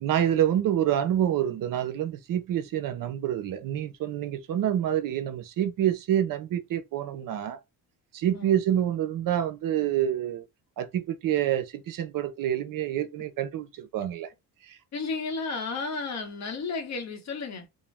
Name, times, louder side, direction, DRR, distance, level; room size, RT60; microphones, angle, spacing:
voice 1, 0.0-7.6 8.1-10.4 10.8-14.3 14.7-14.8, right 10 dB, 60° right, 0.6 m, -27 dB
voice 2, 14.9-17.7, left 4 dB, 45° left, 0.8 m, -33 dB
2.6 x 2.1 x 3.1 m
cardioid pair, 135°, 38 cm